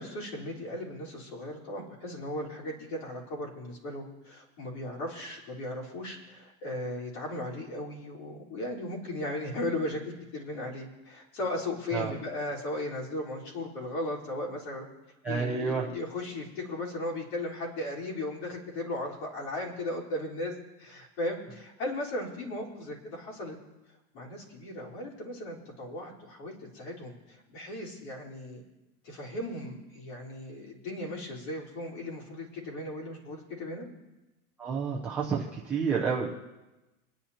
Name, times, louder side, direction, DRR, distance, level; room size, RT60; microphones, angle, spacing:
voice 1, 0.0-10.0 10.3-14.9 15.2-20.5 20.8-23.6 24.1-28.6 29.0-33.9, left 1 dB, 50° left, -3 dB, 4.1 m, -36 dB
voice 2, 15.2-15.8 34.6-36.3, right 5 dB, 5° right, -7 dB, 0.4 m, -29 dB
26.5 x 10.5 x 2.8 m, 1.1 s
supercardioid pair, 165°, 44 cm